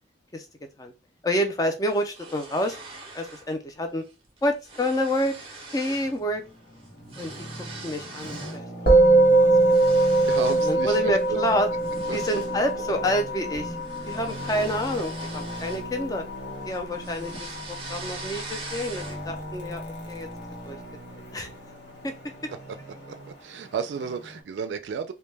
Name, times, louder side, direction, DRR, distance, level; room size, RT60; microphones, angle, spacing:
voice 1, 1.2-2.8 3.1-4.0 4.4-5.3 5.7-6.4 7.2-8.7 9.1-10.0 10.6-11.7 12.1-13.8 14.1-16.2 16.6-20.3 20.6-20.8 21.1-21.5 22.0-22.1, equal, 20° left, 0.4 m, -28 dB
sound 1, 1.9-3.5 3.9-4.1 4.4-6.2 6.5-8.6 9.1-10.7 11.2-11.4 11.8-16.4 16.7-19.4, right 3 dB, 30° right, 0.6 m, -42 dB
Traffic noise roadway noise, 5.9-24.4, equal, 85° left, 0.9 m, -40 dB
Musical instrument, 8.9-18.4, right 2 dB, 50° left, 1.1 m, -23 dB
voice 2, 10.3-11.6 12.1-12.2 23.1-23.2 23.4-25.1, right 6 dB, 85° right, 0.3 m, -32 dB
2.2 x 2.1 x 3.2 m
head